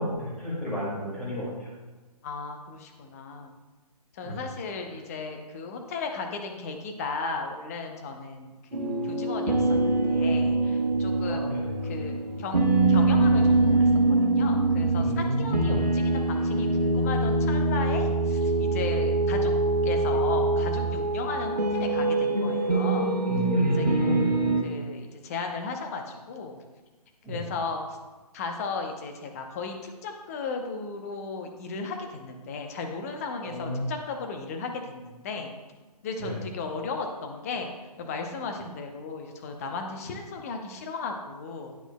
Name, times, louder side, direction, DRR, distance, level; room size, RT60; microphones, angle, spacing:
voice 1, 0.0-1.7 4.2-4.4 11.2-11.7 15.0-15.8 23.3-24.3 27.2-27.4 33.4-34.0 36.2-36.4, equal, 5° left, -8 dB, 1.9 m, -31 dB
voice 2, 2.2-3.5 4.1-11.6 11.8-13.9 14.2-19.5 19.8-23.1 23.7-24.1 24.6-26.6 27.3-27.8 28.3-35.5 36.0-41.7, left 4 dB, 25° left, 4 dB, 0.7 m, -35 dB
sound 1, 8.7-24.6, right 2 dB, 90° right, 1.1 m, -24 dB
10.5 x 5.9 x 2.2 m, 1.2 s
figure-of-eight pair, 135°, 21 cm